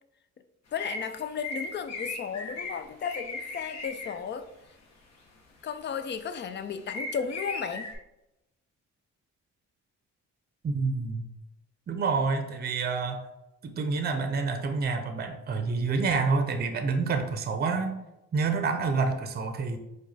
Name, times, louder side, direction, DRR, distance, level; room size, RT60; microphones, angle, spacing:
voice 1, 0.7-4.5 5.6-7.9, left 6 dB, 40° left, 11 dB, 0.4 m, -34 dB
sound 1, 0.8-4.1 5.6-6.4 6.8-8.0, left 2 dB, 60° left, 1.1 m, -37 dB
voice 2, 10.6-11.2 11.9-13.2 13.6-18.0 18.3-19.8, right 4 dB, 30° right, 6 dB, 0.6 m, -28 dB
4.7 x 2.3 x 4.1 m, 0.90 s
cardioid pair, 90°, 30 cm